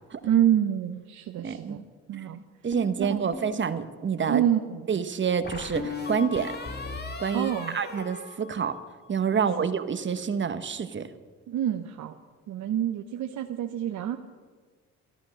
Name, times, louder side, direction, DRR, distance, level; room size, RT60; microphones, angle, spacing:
voice 1, 0.2-1.8 2.1-2.4 3.0-3.3 4.3-4.8 7.3-7.8 9.3-9.7 11.5-12.1 12.5-14.2, right 10 dB, 70° right, 5 dB, 0.8 m, -27 dB
voice 2, 1.4-1.8 2.1-2.3 2.6-4.4 4.9-6.5 7.2-8.8 9.1-11.1, right 6 dB, 40° right, 11 dB, 1.1 m, -28 dB
sound 1, 2.7-3.6 5.4-9.1, left 4 dB, 35° left, 2.1 m, -37 dB
13.5 x 13.0 x 6.3 m, 1.5 s
cardioid pair, 90°, 30 cm